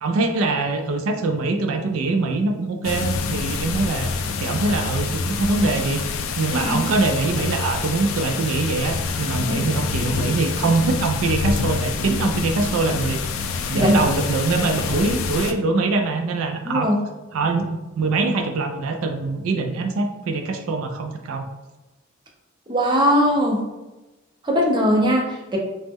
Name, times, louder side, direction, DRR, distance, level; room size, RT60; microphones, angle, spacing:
voice 1, 0.0-4.1 4.4-6.0 6.4-13.2 13.7-16.9 17.3-21.5, right 3 dB, 85° right, 5 dB, 0.3 m, -23 dB
sound 1, 2.8-15.5, left 4 dB, 75° left, 0.3 m, -27 dB
voice 2, 13.7-14.1 16.6-17.0 22.7-23.7 24.4-25.6, equal, 20° right, -1 dB, 0.5 m, -20 dB
3.0 x 2.0 x 3.5 m, 1.1 s
head